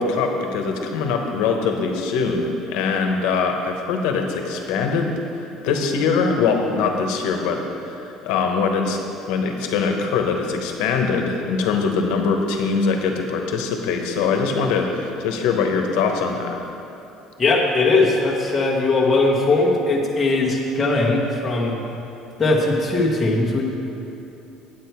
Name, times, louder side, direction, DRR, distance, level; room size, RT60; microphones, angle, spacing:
voice 1, 0.0-5.1 5.6-9.0 9.3-16.8, left 5 dB, 75° left, 3 dB, 1.1 m, -22 dB
voice 2, 17.4-21.8 22.4-23.7, left 2 dB, 15° left, -4 dB, 1.2 m, -19 dB
9.1 x 8.7 x 4.6 m, 2.9 s
cardioid pair, 180°, 0 cm